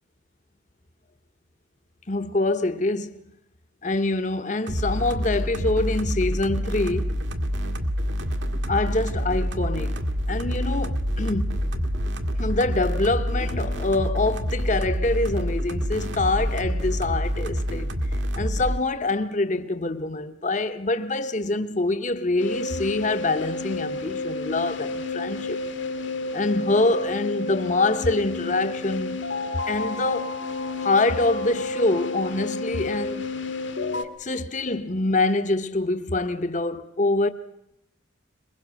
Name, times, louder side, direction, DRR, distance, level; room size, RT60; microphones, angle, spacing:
voice 1, 2.1-3.2 3.8-7.2 8.7-10.0 10.3-11.6 12.4-25.6 26.3-29.2 29.7-30.4 30.8-33.2 34.2-37.3, left 2 dB, 40° left, 0.9 m, -25 dB
sound 1, 4.7-18.8, equal, 70° right, 1.8 m, -27 dB
sound 2, 22.4-34.0, left 3 dB, 70° left, 1.5 m, -31 dB
22.5 x 22.0 x 6.3 m
head